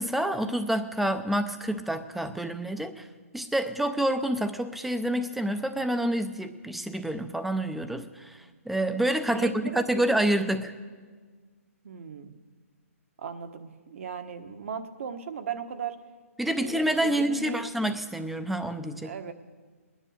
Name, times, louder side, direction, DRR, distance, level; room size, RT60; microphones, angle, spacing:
voice 1, 0.0-3.1 3.3-8.4 8.7-10.7 16.4-19.1, right 1 dB, ahead, 9 dB, 0.6 m, -28 dB
voice 2, 9.3-10.5 11.8-12.3 13.2-16.0 16.6-17.7 19.0-19.3, right 6 dB, 60° right, 7 dB, 1.3 m, -37 dB
20.0 x 10.0 x 6.5 m, 1.5 s
hypercardioid pair, 155°, 8 cm